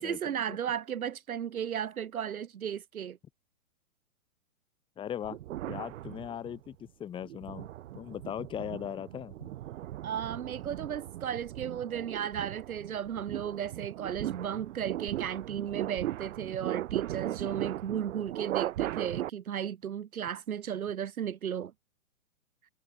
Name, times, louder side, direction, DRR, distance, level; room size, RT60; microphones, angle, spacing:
voice 1, 0.0-3.2 10.0-21.7, right 9 dB, 85° right, 1.0 m, -35 dB
voice 2, 5.0-5.4 5.7-7.7 7.9-9.5, left 9 dB, 10° left, 0.9 m, -39 dB
sound 1, 5.2-6.7 7.2-19.3, right 14 dB, 65° right, 0.5 m, -38 dB
hypercardioid pair, 125°, 42 cm